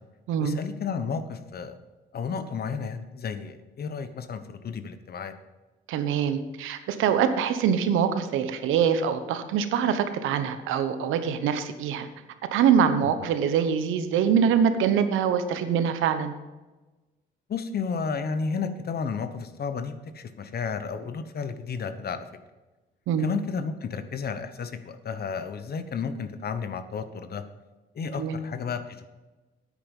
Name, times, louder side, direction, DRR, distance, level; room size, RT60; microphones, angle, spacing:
voice 1, 0.4-1.8 2.1-5.3 17.5-22.3 23.2-27.4 27.9-29.1, left 5 dB, 50° left, 10 dB, 1.1 m, -32 dB
voice 2, 5.9-12.1 12.5-16.3 23.1-23.2 28.2-28.4, right 7 dB, 90° right, 10 dB, 1.0 m, -24 dB
9.6 x 9.3 x 5.4 m, 1.2 s
cardioid pair, 90°, 20 cm